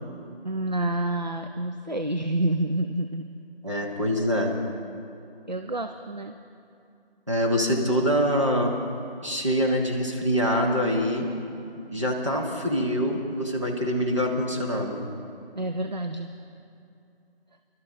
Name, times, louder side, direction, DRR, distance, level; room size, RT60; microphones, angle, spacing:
voice 1, 0.4-3.3 5.5-6.4 15.6-16.3, right 1 dB, 50° right, 6 dB, 0.4 m, -28 dB
voice 2, 3.6-4.5 7.3-8.7 9.2-11.3 11.9-15.0, equal, 30° right, -1 dB, 1.2 m, -25 dB
22.5 x 12.5 x 3.6 m, 2.7 s
figure-of-eight pair, 170°, 30 cm